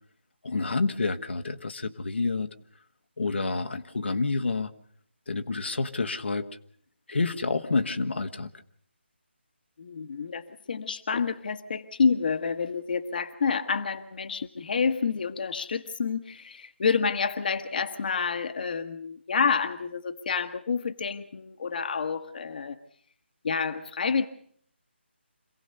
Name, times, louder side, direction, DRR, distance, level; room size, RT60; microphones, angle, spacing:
voice 1, 0.4-2.5 3.2-4.7 5.3-6.5 7.1-8.5, left 3 dB, 70° left, 6 dB, 1.5 m, -28 dB
voice 2, 9.8-22.8 23.4-24.2, left 5 dB, 50° left, 10 dB, 1.4 m, -28 dB
27.0 x 17.5 x 6.8 m, 0.62 s
figure-of-eight pair, 155°, 6 cm